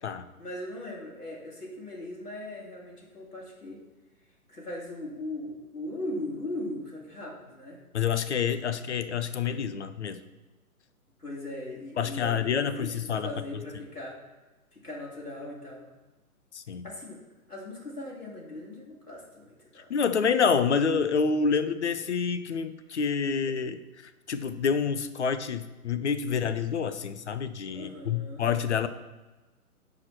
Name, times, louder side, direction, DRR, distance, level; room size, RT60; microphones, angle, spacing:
voice 1, 0.4-3.8 4.5-7.8 11.2-14.3 14.7-15.9 16.8-17.2 17.5-19.9 27.7-28.4, left 1 dB, 85° left, -4 dB, 2.7 m, -39 dB
voice 2, 7.9-10.2 12.0-13.3 16.5-16.8 19.9-23.8 24.3-28.9, left 6 dB, 50° left, 11 dB, 0.7 m, -27 dB
9.3 x 4.9 x 6.0 m, 1.1 s
figure-of-eight pair, 135°, 45 cm